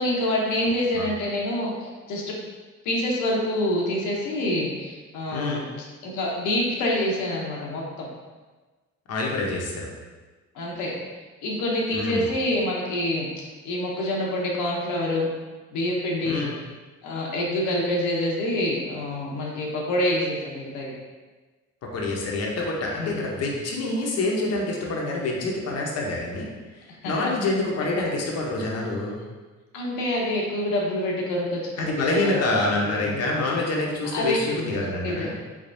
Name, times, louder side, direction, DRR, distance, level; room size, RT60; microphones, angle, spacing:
voice 1, 0.0-2.3 2.8-8.1 10.5-10.9 11.4-15.3 15.7-16.4 17.0-20.9 23.0-23.2 27.0-27.3 29.7-33.2 34.1-35.3, left 1 dB, 85° left, -3 dB, 0.8 m, -27 dB
voice 2, 5.3-5.6 9.1-9.9 11.9-12.3 16.2-16.5 21.9-26.5 27.0-29.2 31.8-35.3, left 2 dB, 55° left, -2 dB, 0.8 m, -26 dB
3.5 x 3.4 x 2.6 m, 1.3 s
cardioid pair, 90°, 30 cm